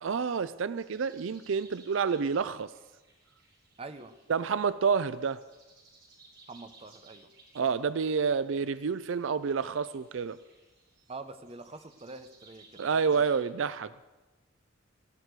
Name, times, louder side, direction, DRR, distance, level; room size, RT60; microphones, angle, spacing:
voice 1, 0.0-2.7 4.3-5.4 7.5-10.4 12.8-14.0, right 6 dB, 70° right, 15 dB, 0.4 m, -29 dB
sound 1, 0.8-13.4, right 3 dB, 55° right, 4.9 m, -60 dB
voice 2, 3.8-4.1 6.5-7.3 7.6-7.7 11.1-13.2, right 3 dB, 30° right, 10 dB, 0.8 m, -45 dB
19.0 x 15.0 x 4.7 m, 1.2 s
head